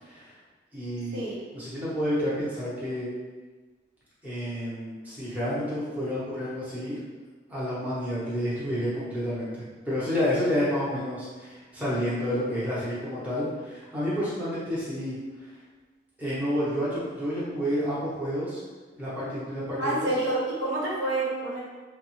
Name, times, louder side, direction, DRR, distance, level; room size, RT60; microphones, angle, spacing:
voice 1, 0.0-0.3 0.7-1.2 1.5-3.1 4.2-7.0 7.5-9.5 9.9-15.2 16.2-18.6 19.0-20.1, equal, 10° right, -10 dB, 0.8 m, -29 dB
voice 2, 19.8-21.6, right 2 dB, 85° right, -7 dB, 0.9 m, -28 dB
3.5 x 2.1 x 3.0 m, 1.3 s
head